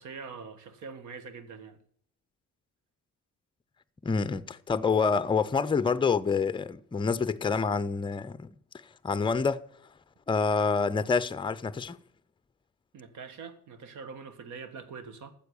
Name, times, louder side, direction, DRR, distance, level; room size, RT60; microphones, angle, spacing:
voice 1, 0.0-1.8 12.9-15.3, right 5 dB, 75° right, 1.5 m, -43 dB
voice 2, 4.0-8.5 9.0-9.6 10.3-12.0, left 5 dB, 15° left, 0.5 m, -27 dB
9.3 x 7.3 x 6.9 m
cardioid pair, 90°, 30 cm